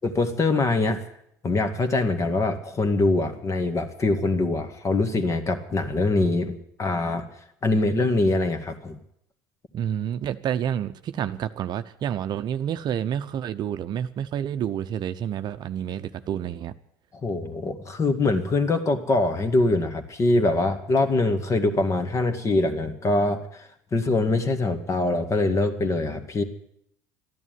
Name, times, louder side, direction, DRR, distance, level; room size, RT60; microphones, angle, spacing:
voice 1, 0.0-1.0 1.4-7.2 7.6-9.0 17.2-26.4, left 2 dB, 35° left, 7 dB, 2.1 m, -23 dB
voice 2, 9.7-16.7, right 9 dB, 50° right, 10 dB, 0.8 m, -29 dB
13.5 x 11.0 x 9.4 m, 0.74 s
hypercardioid pair, 75°, 9 cm